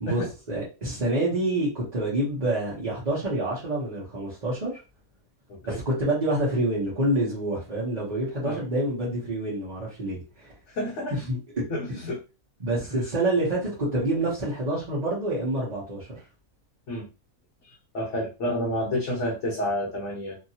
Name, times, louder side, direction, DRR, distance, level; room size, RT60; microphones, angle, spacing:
voice 1, 0.0-4.8 5.6-10.5 11.1-12.0 12.6-16.1, right 1 dB, 35° right, -8 dB, 0.9 m, -27 dB
voice 2, 5.5-5.8 8.4-8.6 10.7-11.2 11.7-12.2 16.9-17.1 17.6-20.4, left 1 dB, 60° left, -5 dB, 1.0 m, -30 dB
2.8 x 2.6 x 2.8 m, 0.30 s
omnidirectional pair, 1.6 m